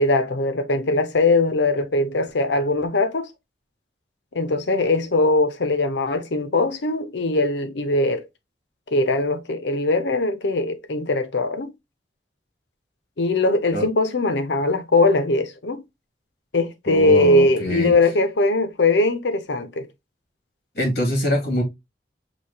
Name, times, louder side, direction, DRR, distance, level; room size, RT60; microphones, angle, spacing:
voice 1, 0.0-3.3 4.3-8.2 8.9-11.7 13.2-15.8 16.5-19.9, left 2 dB, 90° left, 0.7 m, -21 dB
voice 2, 16.9-17.9 20.8-21.6, equal, 60° left, 2.1 m, -23 dB
6.2 x 2.8 x 2.7 m
head